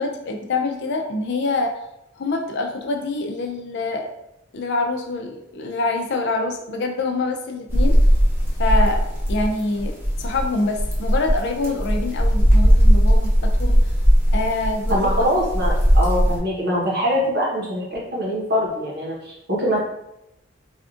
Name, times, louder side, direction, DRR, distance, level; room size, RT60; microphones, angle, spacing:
voice 1, 0.0-1.7 2.1-4.1 4.5-8.0 8.6-9.0 9.3-13.8 14.3-15.4, left 3 dB, 60° left, 3 dB, 0.4 m, -25 dB
sound 1, 7.7-16.4, equal, 10° right, 0.8 m, -18 dB
voice 2, 14.9-19.8, equal, 55° right, -4 dB, 1.0 m, -23 dB
3.4 x 2.4 x 2.4 m, 0.84 s
head